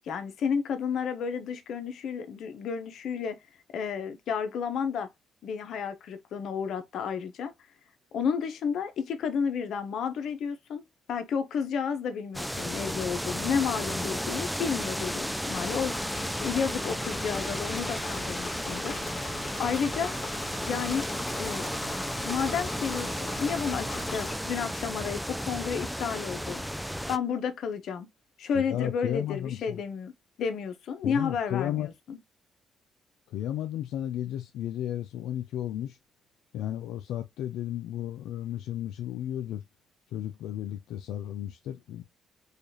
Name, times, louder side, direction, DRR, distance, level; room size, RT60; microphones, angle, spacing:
voice 1, 0.1-3.4 3.7-5.1 5.4-7.5 8.1-10.8 11.1-20.1 20.6-21.1 21.4-21.6 22.2-26.6 27.1-28.1 28.4-30.1 30.4-32.2, left 6 dB, 70° left, 0.7 m, -31 dB
sound 1, 12.3-27.2, equal, ahead, 0.3 m, -33 dB
Engine / Mechanisms, 15.5-24.3, left 3 dB, 40° left, 1.4 m, -40 dB
voice 2, 28.5-29.8 31.0-31.9 33.3-36.0 36.5-39.6 40.1-42.0, left 11 dB, 90° left, 0.3 m, -33 dB
4.9 x 2.3 x 2.6 m
cardioid pair, 90°, 0 cm